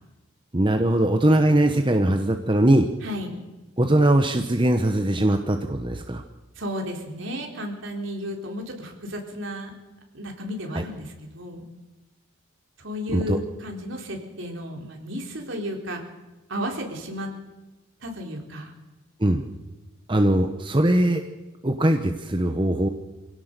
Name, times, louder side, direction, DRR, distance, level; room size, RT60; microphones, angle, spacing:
voice 1, 0.5-2.9 3.8-6.2 10.7-10.8 13.1-13.4 19.2-19.4 20.1-21.2 21.6-22.9, right 1 dB, 25° right, 5 dB, 1.0 m, -21 dB
voice 2, 3.0-3.4 6.6-9.7 10.1-11.7 12.8-16.0 16.5-17.3 18.0-18.7, equal, 65° right, 2 dB, 4.0 m, -33 dB
24.5 x 17.0 x 6.8 m, 1.1 s
head